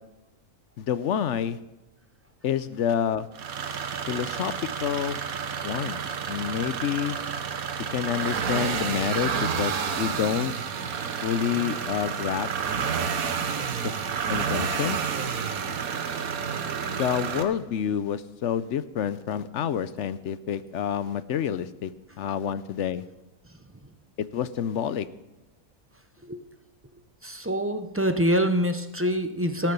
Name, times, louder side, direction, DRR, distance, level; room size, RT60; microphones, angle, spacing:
voice 1, 0.8-1.6 2.4-3.3 4.1-4.5 4.8-5.2 5.6-6.0 6.3-7.2 7.9-10.5 11.2-12.5 13.8-13.9 14.3-15.0 16.9-21.9 22.2-23.0 24.2-25.1, left 9 dB, 65° left, 15 dB, 0.8 m, -28 dB
sound 1, 3.3-17.4, right 6 dB, 80° right, 1.5 m, -30 dB
voice 2, 27.2-29.7, equal, 15° right, 8 dB, 0.4 m, -25 dB
18.0 x 7.6 x 6.7 m, 0.97 s
omnidirectional pair, 1.5 m